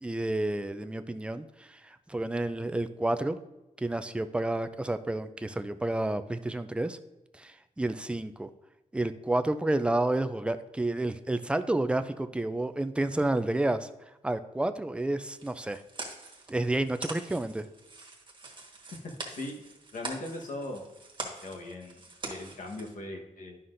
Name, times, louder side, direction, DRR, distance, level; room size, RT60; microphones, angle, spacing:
voice 1, 0.0-3.4 3.8-7.0 7.4-8.5 8.9-13.9 14.2-15.8 16.5-17.7, right 2 dB, 10° right, 10 dB, 0.3 m, -30 dB
sound 1, 15.4-22.9, right 3 dB, 35° right, 1.4 m, -43 dB
voice 2, 19.9-20.8 21.2-23.6, left 2 dB, 75° left, 1 dB, 1.2 m, -39 dB
11.0 x 5.7 x 2.6 m, 1.0 s
wide cardioid pair, 150°, 14 cm